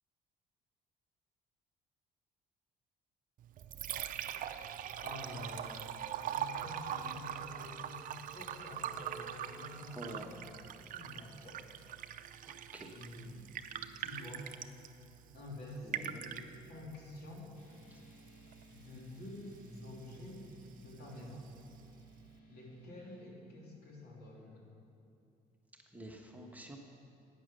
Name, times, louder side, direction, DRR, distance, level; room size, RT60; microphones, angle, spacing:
Liquid, 3.4-22.4, right 9 dB, 55° right, 0.5 m, -44 dB
voice 1, 5.0-5.7 6.2-8.0 8.3-10.4 10.9-11.6 11.9-12.0 12.9-13.4 14.0-14.5 15.3-17.5 18.7-20.4 20.7-21.4 22.5-24.7, left 1 dB, 70° left, -2 dB, 2.8 m, -48 dB
voice 2, 9.9-10.5 12.4-12.9 15.8-16.3 17.9-18.0 25.7-26.8, right 1 dB, 10° right, 1 dB, 1.1 m, -49 dB
sound 1, 17.5-23.3, right 2 dB, 50° left, 2.6 m, -60 dB
10.5 x 9.0 x 6.6 m, 2.6 s
cardioid pair, 110°, 17 cm